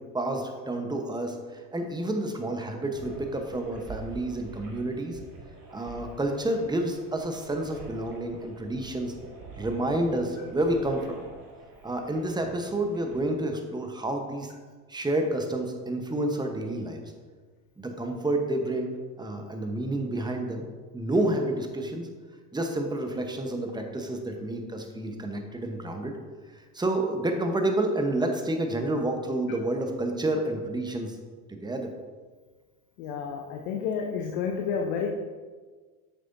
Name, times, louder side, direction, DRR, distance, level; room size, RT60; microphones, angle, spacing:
voice 1, 0.0-5.2 5.7-9.1 9.6-11.2 11.8-14.5 14.9-17.0 17.8-18.9 19.2-20.7 20.9-22.1 22.5-26.1 26.7-31.2 31.5-31.9, right 1 dB, 10° right, 4 dB, 1.0 m, -29 dB
sound 1, 2.9-13.2, right 3 dB, 45° right, 2.2 m, -46 dB
voice 2, 33.0-35.1, left 6 dB, 65° left, 1 dB, 1.0 m, -30 dB
9.2 x 6.5 x 2.7 m, 1.4 s
hypercardioid pair, 85°, 49 cm